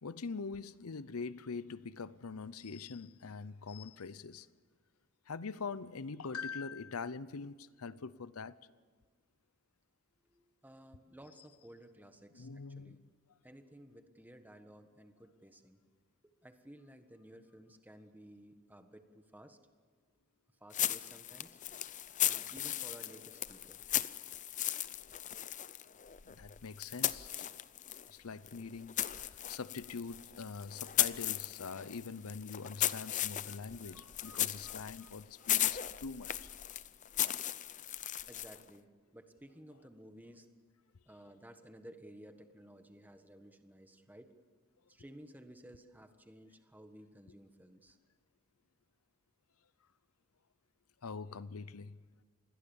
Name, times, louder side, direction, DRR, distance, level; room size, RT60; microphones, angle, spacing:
voice 1, 0.0-4.5 5.3-8.5 12.3-13.1 26.3-27.3 28.1-36.5 51.0-52.0, left 4 dB, 90° left, 0.7 m, -43 dB
voice 2, 10.2-13.0 13.4-15.8 16.2-19.6 20.6-21.6 22.2-23.8 33.5-35.1 35.4-35.5 38.3-40.5 41.0-44.3 44.9-48.0, right 1 dB, 10° right, 1.5 m, -56 dB
sound 1, 20.7-28.1 28.4-38.7, left 12 dB, 35° left, 0.6 m, -37 dB
27.5 x 21.0 x 7.2 m
head